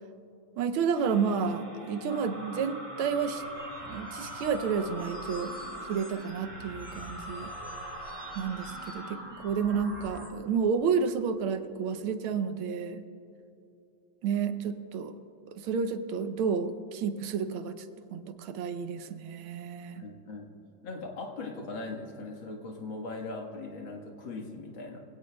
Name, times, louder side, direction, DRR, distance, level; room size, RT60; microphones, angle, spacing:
voice 1, 0.6-3.4 3.9-7.5 8.3-13.0 14.2-15.1 15.5-17.8 18.1-20.0, right 6 dB, 90° right, 10 dB, 1.6 m, -31 dB
sound 1, 0.9-10.3, equal, 35° right, 3.9 m, -42 dB
voice 2, 19.9-20.5 20.8-25.1, left 3 dB, 70° left, 1 dB, 2.2 m, -39 dB
23.5 x 17.0 x 2.3 m, 2.8 s
omnidirectional pair, 2.3 m